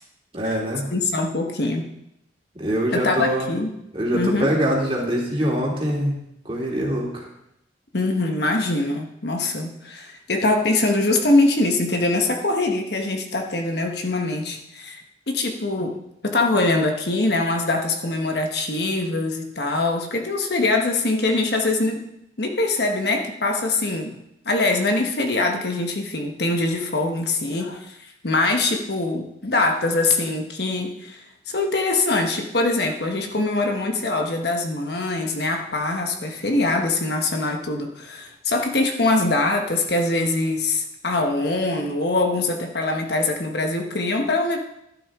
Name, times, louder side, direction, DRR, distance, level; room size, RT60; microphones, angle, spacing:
voice 1, 0.3-0.9 2.5-3.5 3.9-7.3, equal, 30° right, -2 dB, 2.5 m, -24 dB
voice 2, 0.9-1.9 2.9-3.7 4.1-4.5 7.9-15.0 15.3-22.0 22.4-24.2 24.4-44.6, left 2 dB, 55° left, 3 dB, 1.2 m, -23 dB
12.0 x 10.0 x 3.6 m, 0.82 s
head